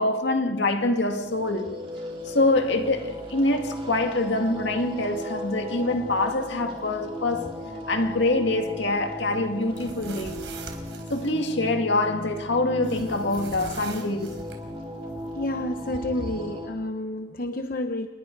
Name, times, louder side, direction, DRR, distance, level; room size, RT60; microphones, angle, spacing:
voice 1, 0.0-1.8 2.3-7.5 7.9-10.4 11.1-14.3, left 2 dB, 65° left, 2.1 m, -25 dB
sound 1, 1.0-16.7, equal, 30° right, 3.9 m, -37 dB
sound 2, 9.6-11.3 12.8-14.6, right 4 dB, 70° right, 4.1 m, -42 dB
voice 2, 15.4-18.1, left 1 dB, 45° left, 0.8 m, -30 dB
28.0 x 21.0 x 4.7 m
head